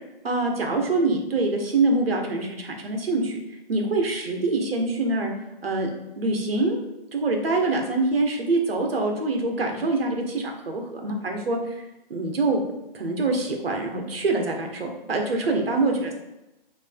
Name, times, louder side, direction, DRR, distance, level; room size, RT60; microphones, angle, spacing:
voice 1, 0.2-3.4 3.7-5.3 5.6-5.9 6.1-6.8 7.1-11.8 12.1-12.6 12.9-16.1, right 2 dB, 80° right, 2 dB, 1.6 m, -25 dB
9.3 x 3.3 x 3.6 m, 0.97 s
hypercardioid pair, 170°, 29 cm